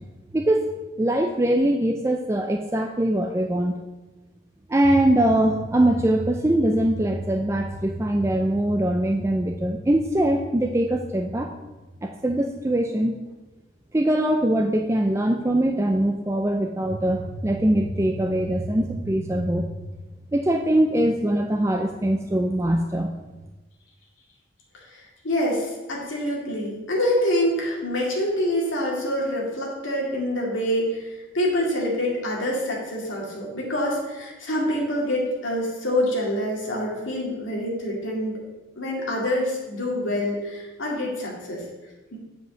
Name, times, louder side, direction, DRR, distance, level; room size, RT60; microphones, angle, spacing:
voice 1, 0.3-0.7 1.0-3.8 4.7-11.5 12.0-13.2 13.9-19.8 20.3-23.1, right 1 dB, 15° right, 3 dB, 0.4 m, -22 dB
voice 2, 25.2-38.4 38.8-41.6 42.1-42.2, left 1 dB, 80° left, -3 dB, 2.3 m, -26 dB
8.0 x 5.6 x 6.1 m, 1.1 s
head